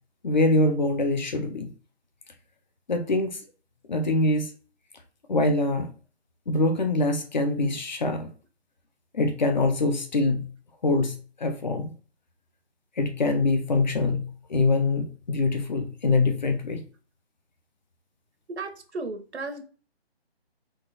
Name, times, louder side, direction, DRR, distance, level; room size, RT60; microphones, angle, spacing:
voice 1, 0.2-1.7 2.9-3.4 3.9-4.5 5.3-5.9 6.5-8.3 9.1-10.5 10.8-11.9 13.0-16.8, left 2 dB, 45° left, 0.7 m, -24 dB
voice 2, 18.5-19.6, right 3 dB, 80° right, 1.1 m, -34 dB
3.7 x 2.9 x 4.0 m
hypercardioid pair, 165°, 33 cm